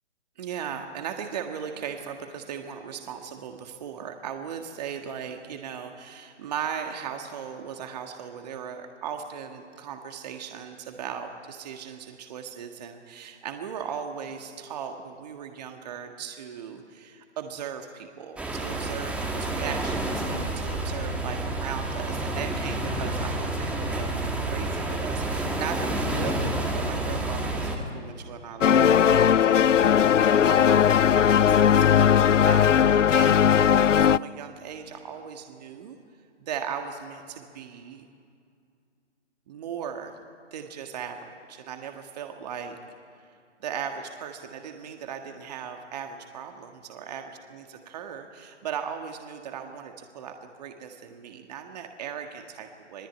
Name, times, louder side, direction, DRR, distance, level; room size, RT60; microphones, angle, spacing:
voice 1, 0.4-36.0 36.4-38.1 39.5-40.2 40.5-42.8 43.2-43.3 43.6-53.1, right 7 dB, 35° right, 5 dB, 1.7 m, -38 dB
sound 1, 18.4-27.8, right 2 dB, 5° right, 1.6 m, -29 dB
sound 2, 28.6-34.2, left 8 dB, 85° left, 0.6 m, -18 dB
27.0 x 20.0 x 9.4 m, 2.3 s
figure-of-eight pair, 150°, 36 cm